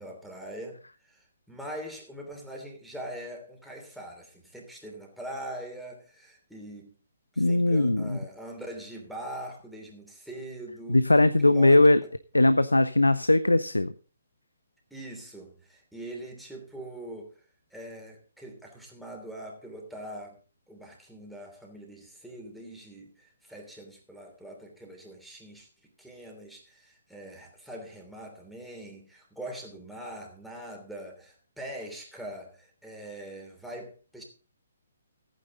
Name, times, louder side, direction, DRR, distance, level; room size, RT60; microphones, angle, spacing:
voice 1, 0.0-6.9 7.3-11.0 11.4-11.9 14.9-17.4 17.7-20.4 20.7-25.7 26.0-34.2, right 1 dB, ahead, -1 dB, 3.1 m, -42 dB
voice 2, 7.4-8.2 10.9-12.0 12.3-13.9, left 2 dB, 85° left, 13 dB, 0.6 m, -20 dB
15.0 x 9.2 x 3.8 m, 0.37 s
figure-of-eight pair, 135°, 0 cm